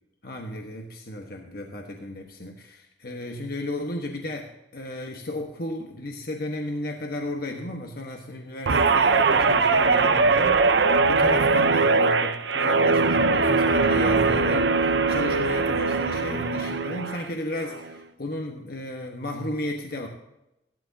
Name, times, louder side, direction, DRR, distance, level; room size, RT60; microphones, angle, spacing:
voice 1, 0.2-20.1, left 1 dB, 60° left, 2 dB, 1.3 m, -34 dB
Guitar, 8.7-17.2 17.6-18.0, right 4 dB, 90° right, 0.8 m, -21 dB
16.0 x 12.0 x 2.8 m, 0.88 s
head